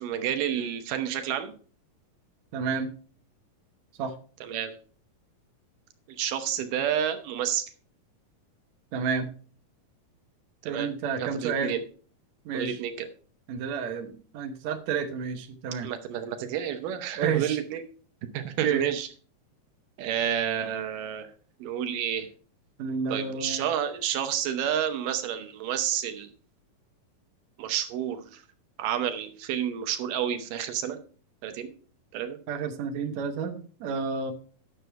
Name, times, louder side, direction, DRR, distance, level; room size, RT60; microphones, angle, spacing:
voice 1, 0.0-1.5 4.4-4.7 6.2-7.6 10.6-10.9 11.2-11.8 12.5-13.1 15.8-17.8 18.3-19.1 20.0-21.3 21.6-22.3 23.1-26.3 27.6-28.4 28.8-31.0 31.4-31.7 32.1-32.4, right 9 dB, 85° right, 8 dB, 2.5 m, -30 dB
voice 2, 2.5-2.9 4.0-4.1 8.9-9.3 10.7-11.7 12.5-12.8 13.5-15.9 17.2-17.6 18.6-18.8 22.8-23.7 32.5-34.3, right 6 dB, 65° right, 5 dB, 2.1 m, -30 dB
10.0 x 6.7 x 4.6 m, 0.42 s
omnidirectional pair, 3.8 m